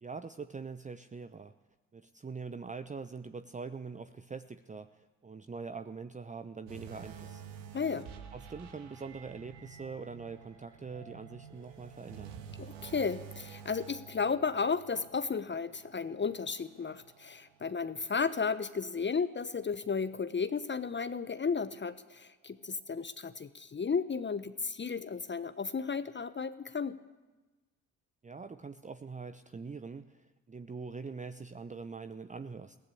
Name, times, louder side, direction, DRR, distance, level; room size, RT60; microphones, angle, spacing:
voice 1, 0.0-1.5 1.9-7.4 8.3-12.4 28.2-32.8, right 4 dB, 15° right, 10 dB, 0.8 m, -43 dB
sound 1, 6.7-18.1 18.5-18.7 19.3-19.4, right 7 dB, 70° right, 2.1 m, -50 dB
voice 2, 7.7-8.1 12.6-27.0, left 5 dB, 25° left, 12 dB, 1.0 m, -34 dB
21.5 x 16.5 x 8.6 m, 1.2 s
figure-of-eight pair, 45°, 42 cm